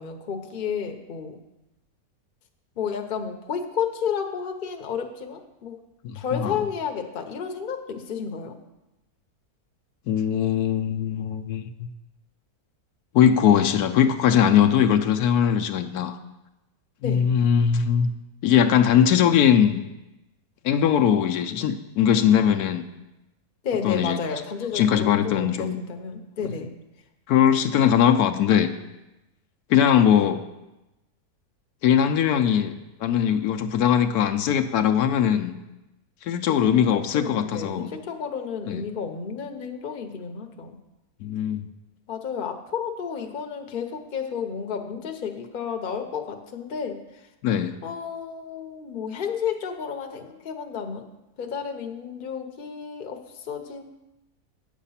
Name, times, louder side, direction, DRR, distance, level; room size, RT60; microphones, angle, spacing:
voice 1, 0.0-1.4 2.8-5.8 6.1-8.6 17.0-17.3 23.6-26.7 36.5-40.8 42.1-47.0 47.8-51.1 51.4-53.8, left 6 dB, 40° left, 5 dB, 0.9 m, -31 dB
voice 2, 6.0-6.5 10.1-11.9 13.1-16.2 17.0-18.1 18.4-19.8 20.6-22.9 23.8-24.2 24.7-25.8 27.3-28.7 29.7-30.5 31.8-32.7 33.0-35.6 36.2-37.9 38.7-38.8 41.2-41.6 47.4-47.8, left 9 dB, 80° left, 6 dB, 1.1 m, -20 dB
9.1 x 7.4 x 5.6 m, 0.97 s
omnidirectional pair, 1.6 m